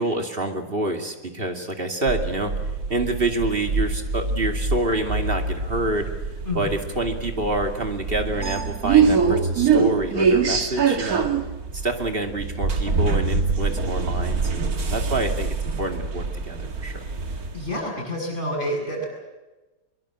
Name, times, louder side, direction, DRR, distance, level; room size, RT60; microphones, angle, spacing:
voice 1, 0.0-2.5 2.9-6.1 6.5-11.3 11.7-17.0, right 2 dB, 30° right, 5 dB, 2.7 m, -27 dB
sound 1, 2.1-17.7, right 5 dB, 55° right, 2.3 m, -24 dB
voice 2, 17.3-19.0, equal, 30° left, -1 dB, 7.4 m, -29 dB
23.5 x 22.0 x 7.6 m, 1.1 s
omnidirectional pair, 1.8 m